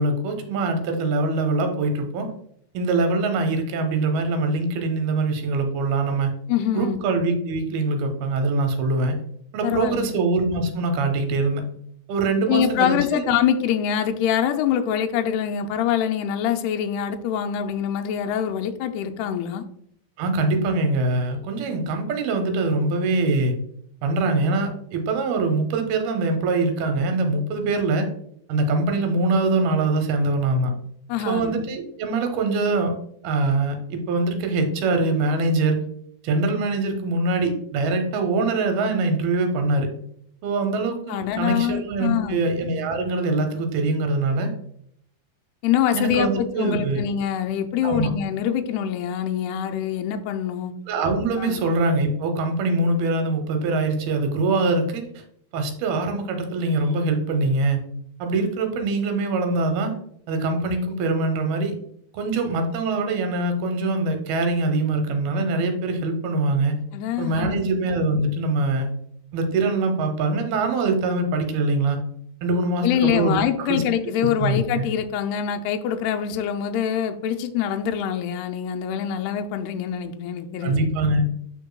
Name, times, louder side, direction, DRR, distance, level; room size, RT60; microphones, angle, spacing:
voice 1, 0.0-2.3 2.7-6.3 6.7-9.2 9.5-11.6 12.1-13.3 20.2-23.5 24.0-28.1 28.5-30.7 31.3-32.9 33.2-35.8 36.2-39.9 40.4-44.5 45.9-47.0 47.8-48.1 50.9-55.0 55.5-57.8 58.2-59.9 60.3-61.7 62.1-66.8 67.2-68.9 69.3-72.0 72.4-73.8 74.2-74.8 80.6-81.2, right 3 dB, 75° right, 6 dB, 2.7 m, -23 dB
voice 2, 6.5-7.0 9.6-10.1 12.5-19.7 31.1-31.5 41.1-42.4 45.6-50.7 51.4-51.6 66.9-67.7 72.8-80.9, left 9 dB, 90° left, 6 dB, 2.6 m, -24 dB
11.5 x 4.6 x 2.2 m, 0.69 s
omnidirectional pair, 4.6 m